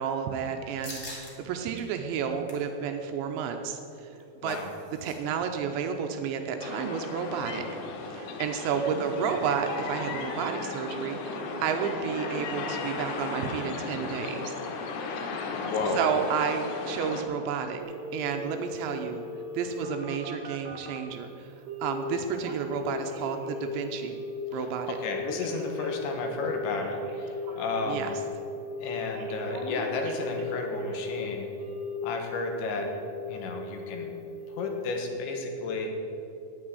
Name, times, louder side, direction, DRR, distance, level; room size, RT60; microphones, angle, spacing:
voice 1, 0.0-4.1 4.4-4.6 5.0-7.7 8.0-14.6 15.9-17.8 18.1-19.2 19.5-21.5 21.8-24.2 24.5-25.0 27.9-28.1, right 7 dB, 85° right, 5 dB, 2.8 m, -31 dB
sound 1, 0.8-1.3 1.8-1.9 2.2-2.7 4.0-5.2 5.4-5.5 5.9-6.1, left 1 dB, 55° left, 0.8 m, -44 dB
sound 2, 6.6-17.2, left 4 dB, 90° left, 3.9 m, -35 dB
voice 2, 8.7-9.3 15.5-16.1 24.5-24.7 25.0-28.1 28.8-31.5 32.0-32.9 33.3-34.1 34.5-35.9, left 3 dB, 75° left, 3 dB, 3.4 m, -33 dB
Telephone, 17.8-21.1 21.7-22.0 22.3-23.7 24.0-24.4 24.7-28.1 28.5-28.9 29.1-31.2 31.6-32.4 32.8-33.2 33.6-33.9 34.3-34.7 35.1-35.2, left 1 dB, 65° right, 2.4 m, -37 dB
9.8 x 8.8 x 9.5 m, 2.8 s
omnidirectional pair, 5.6 m